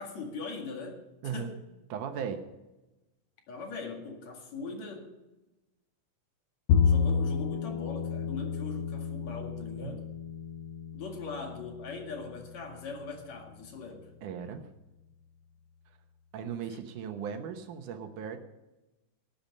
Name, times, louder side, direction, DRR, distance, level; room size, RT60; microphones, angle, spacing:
voice 1, 0.0-1.6 3.5-5.1 6.8-10.0 10.9-14.1 16.7-16.8, left 4 dB, 60° left, 2 dB, 3.2 m, -41 dB
voice 2, 1.9-2.4 9.8-9.9 14.2-14.7 16.3-18.4, right 7 dB, 75° right, 7 dB, 2.6 m, -37 dB
Bowed string instrument, 6.7-13.0, left 6 dB, 90° left, 1.4 m, -30 dB
18.5 x 8.8 x 5.3 m, 1.0 s
omnidirectional pair, 3.7 m